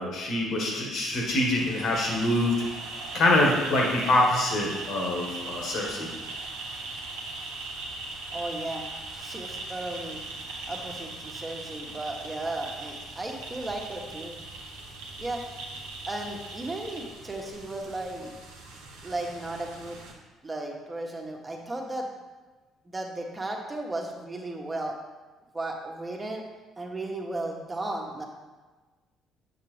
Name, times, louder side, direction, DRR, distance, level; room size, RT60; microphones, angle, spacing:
voice 1, 0.0-2.6 3.1-6.1, left 1 dB, 55° left, -1 dB, 1.7 m, -25 dB
sound 1, 1.1-20.1, right 2 dB, 70° right, 1.3 m, -39 dB
voice 2, 8.3-10.2 10.7-14.3 15.2-15.4 16.1-18.4 19.0-20.0 20.4-22.1 22.8-25.0 25.5-26.4 26.8-28.3, right 2 dB, 20° right, 1 dB, 1.5 m, -35 dB
8.2 x 6.7 x 3.4 m, 1.3 s
figure-of-eight pair, 50°, 0 cm